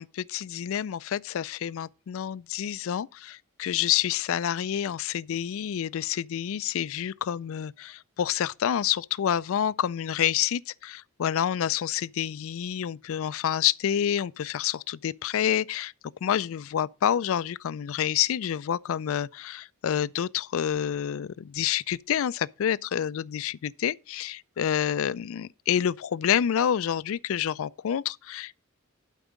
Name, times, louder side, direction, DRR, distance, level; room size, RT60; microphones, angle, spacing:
voice 1, 0.0-15.9 16.2-28.6, left 9 dB, 65° left, 0.3 m, -28 dB
11.5 x 4.6 x 5.1 m
head